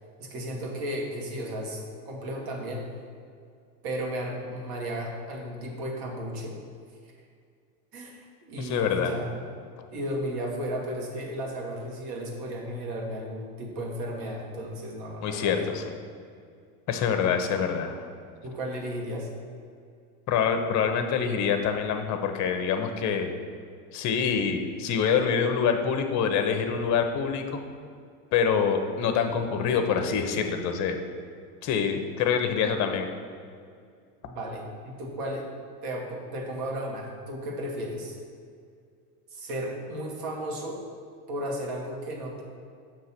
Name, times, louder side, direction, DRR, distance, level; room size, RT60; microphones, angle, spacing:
voice 1, 0.2-2.8 3.8-6.5 7.9-9.5 9.9-15.7 18.4-19.3 34.2-35.5 35.8-38.2 39.3-40.8 41.3-42.4, equal, 55° right, 0 dB, 1.5 m, -34 dB
voice 2, 8.6-9.1 15.2-15.8 16.9-18.1 20.3-23.3 23.9-27.6 28.3-31.0 31.6-33.1, left 6 dB, 40° left, 6 dB, 0.7 m, -26 dB
6.7 x 3.0 x 5.8 m, 2.3 s
hypercardioid pair, 105°, 45 cm